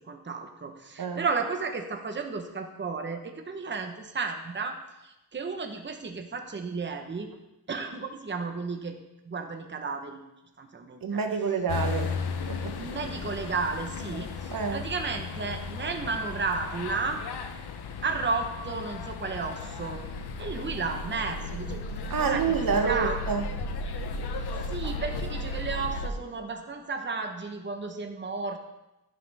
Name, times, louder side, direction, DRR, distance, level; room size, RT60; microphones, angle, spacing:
voice 1, 0.0-4.8 5.0-7.3 7.7-9.0 9.3-10.2 10.6-11.2 12.8-17.2 18.0-20.0 20.4-21.8 22.2-22.5 22.8-23.2 24.4-28.6, right 4 dB, 30° right, 5 dB, 1.0 m, -33 dB
voice 2, 11.0-12.1 12.5-12.9 14.5-14.8 22.1-23.5, right 5 dB, 60° right, 5 dB, 1.1 m, -28 dB
sound 1, 11.7-26.1, left 3 dB, 80° left, 1.0 m, -35 dB
12.0 x 10.5 x 3.5 m, 0.94 s
wide cardioid pair, 125°, 39 cm